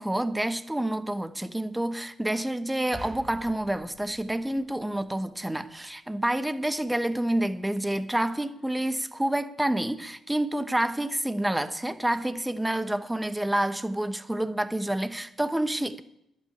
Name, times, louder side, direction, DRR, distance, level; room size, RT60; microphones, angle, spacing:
voice 1, 0.0-16.0, right 1 dB, 10° right, 0.9 m, -28 dB
sound 1, 2.9-5.3, right 2 dB, 25° right, 1.5 m, -46 dB
11.5 x 8.8 x 8.6 m
cardioid pair, 90°, 0 cm